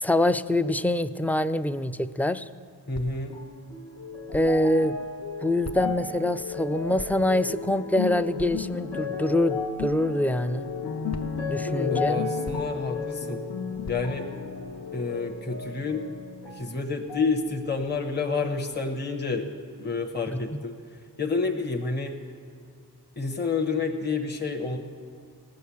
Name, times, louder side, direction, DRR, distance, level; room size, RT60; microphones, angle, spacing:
voice 1, 0.0-2.5 4.3-4.9 5.4-10.7 11.5-12.2 20.3-20.6, left 1 dB, 5° left, 13 dB, 0.3 m, -25 dB
sound 1, 2.9-3.3 4.3-4.7 5.6-6.1 7.0-7.3 8.4-8.7 9.8-10.0 11.1-11.6 12.4-12.9 13.8-14.3, left 3 dB, 40° left, 0.7 m, -41 dB
voice 2, 2.9-3.3 11.7-13.4 13.9-14.3 14.9-16.0 16.5-19.5 19.8-20.7 21.2-22.2 23.2-24.8, left 4 dB, 25° left, 4 dB, 1.0 m, -29 dB
sound 2, 3.3-16.8 17.1-18.0 18.7-18.8, left 5 dB, 75° left, 1.4 m, -33 dB
18.5 x 6.5 x 7.0 m, 2.1 s
cardioid pair, 60°, 41 cm